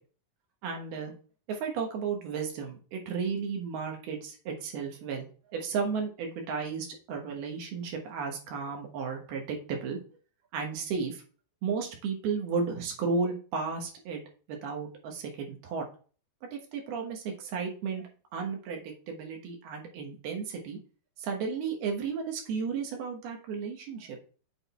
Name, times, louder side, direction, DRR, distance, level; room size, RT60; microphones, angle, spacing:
voice 1, 0.6-1.2 1.5-10.0 10.5-11.2 11.6-14.2 14.5-15.9 16.5-20.8 21.2-24.2, right 5 dB, 90° right, 2 dB, 3.4 m, -34 dB
7.8 x 4.1 x 4.3 m, 0.39 s
omnidirectional pair, 4.3 m